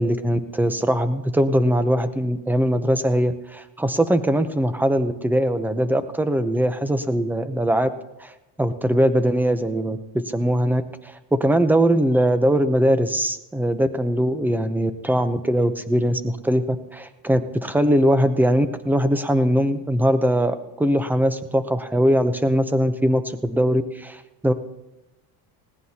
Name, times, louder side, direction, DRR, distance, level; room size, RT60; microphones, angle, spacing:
voice 1, 0.0-7.9 8.2-8.3 8.6-11.1 11.4-24.5, equal, 5° right, 11 dB, 0.7 m, -21 dB
20.5 x 17.5 x 2.9 m, 0.99 s
cardioid pair, 120°, 46 cm